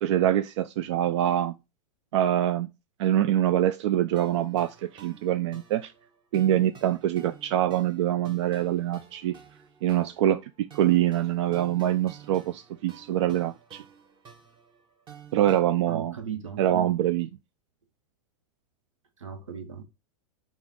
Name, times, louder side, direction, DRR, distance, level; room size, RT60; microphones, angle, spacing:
voice 1, 0.0-1.5 2.1-2.7 3.0-5.9 6.3-9.4 9.8-13.8 15.3-16.1 16.6-17.3, right 12 dB, 65° right, 0.4 m, -25 dB
sound 1, 4.2-15.6, right 7 dB, 30° right, 1.1 m, -51 dB
voice 2, 15.9-16.9 19.2-19.9, right 7 dB, 90° right, 1.0 m, -37 dB
5.6 x 2.4 x 3.8 m
hypercardioid pair, 110°, 16 cm